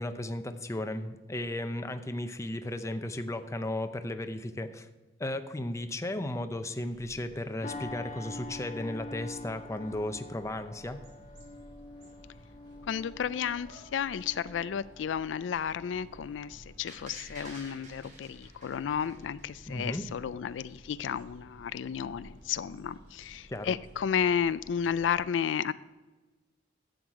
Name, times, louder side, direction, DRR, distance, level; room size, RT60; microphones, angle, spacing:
voice 1, 0.0-4.9 5.2-11.0 19.7-20.0 23.5-23.7, left 1 dB, 15° left, 8 dB, 0.6 m, -35 dB
sound 1, 6.9-25.2, equal, 80° right, 4.1 m, -54 dB
sound 2, 7.6-16.5 16.9-17.2, left 2 dB, 40° left, 1.2 m, -46 dB
voice 2, 12.9-25.7, left 8 dB, 90° left, 16 dB, 0.4 m, -32 dB
sound 3, 16.9-19.8 20.2-20.3, right 2 dB, 45° right, 3.2 m, -50 dB
11.5 x 8.0 x 4.7 m, 1.2 s
head